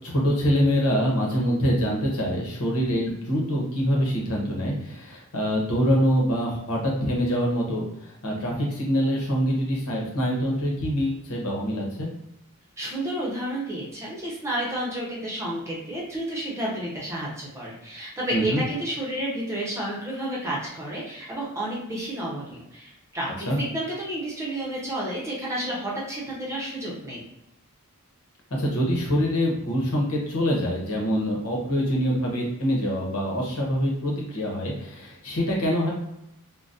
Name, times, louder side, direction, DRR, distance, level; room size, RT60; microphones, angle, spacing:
voice 1, 0.0-12.1 18.3-18.6 23.5-23.6 28.5-35.9, equal, 80° left, -2 dB, 1.0 m, -25 dB
voice 2, 12.8-27.2, right 1 dB, 15° right, -5 dB, 0.8 m, -31 dB
3.9 x 2.2 x 2.6 m, 0.84 s
head